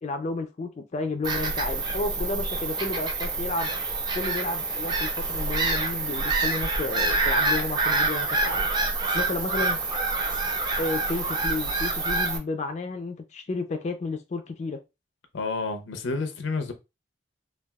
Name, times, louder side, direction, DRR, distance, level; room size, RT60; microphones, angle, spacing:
voice 1, 0.0-3.7 4.1-8.7 9.1-9.8 10.8-14.8, left 3 dB, 35° left, 0.3 m, -32 dB
Bird vocalization bird call bird song / Gull seagull, 1.2-12.4, right 3 dB, 25° right, 0.5 m, -27 dB
voice 2, 15.3-16.7, left 3 dB, 90° left, 0.6 m, -29 dB
3.3 x 2.3 x 2.2 m
head